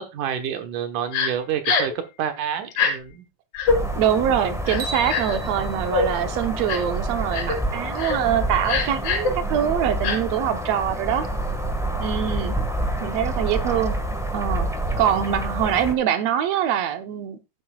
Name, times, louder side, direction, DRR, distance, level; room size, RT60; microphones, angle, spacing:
voice 1, 0.0-3.3 12.2-12.5 14.9-15.0, right 9 dB, 90° right, 7 dB, 2.8 m, -29 dB
Crying sobbing, 1.1-1.3 1.6-2.0 2.7-2.9 3.5-3.8 4.7-5.4 5.9-6.1 6.7-6.9 7.3-7.6 8.0-8.2 8.6-9.3 10.0-10.2, left 5 dB, 75° left, 4.1 m, -23 dB
sound 1, 3.7-15.9, right 1 dB, 5° right, 0.3 m, -28 dB
voice 2, 4.0-11.3 12.0-12.6 13.0-14.0 14.3-14.7 15.0-17.4, right 9 dB, 65° right, 8 dB, 2.1 m, -24 dB
sound 2, 4.8-7.1, right 2 dB, 45° right, 2.8 m, -37 dB
12.0 x 10.0 x 2.4 m, 0.26 s
omnidirectional pair, 3.5 m